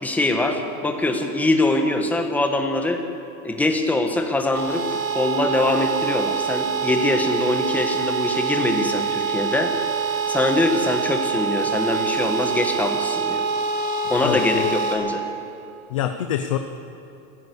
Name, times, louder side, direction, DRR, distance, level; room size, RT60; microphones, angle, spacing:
voice 1, 0.0-3.0 3.4-9.7 10.3-13.4 14.1-15.2, left 2 dB, 5° left, 4 dB, 1.3 m, -23 dB
sound 1, 4.5-14.9, right 6 dB, 65° right, 6.9 m, -25 dB
voice 2, 14.2-14.8 15.9-16.6, left 10 dB, 20° left, 7 dB, 0.4 m, -25 dB
27.5 x 15.5 x 8.2 m, 2.8 s
supercardioid pair, 160°, 49 cm